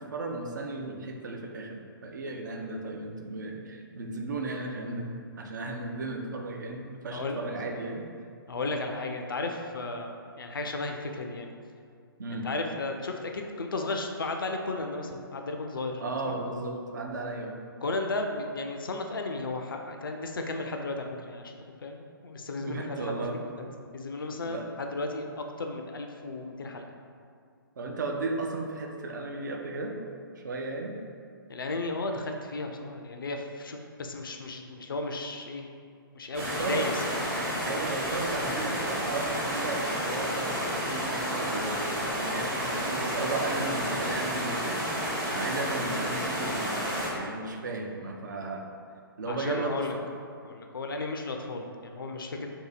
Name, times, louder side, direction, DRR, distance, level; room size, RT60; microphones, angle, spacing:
voice 1, 0.0-8.0 12.2-12.5 16.0-17.6 22.6-23.4 23.6-23.7 24.5-24.6 27.8-29.9 30.4-31.0 36.4-36.9 37.6-46.6 47.1-48.6 49.2-50.1, right 3 dB, 55° right, 1 dB, 0.5 m, -35 dB
voice 2, 8.5-11.5 12.3-16.4 17.8-21.5 21.8-23.7 23.9-26.9 31.5-35.7 36.1-37.1 49.3-49.9 50.5-52.5, left 2 dB, 65° left, 3 dB, 0.4 m, -34 dB
sound 1, 36.3-47.1, equal, 35° right, 1.2 m, -31 dB
2.7 x 2.7 x 3.8 m, 2.3 s
figure-of-eight pair, 125°, 12 cm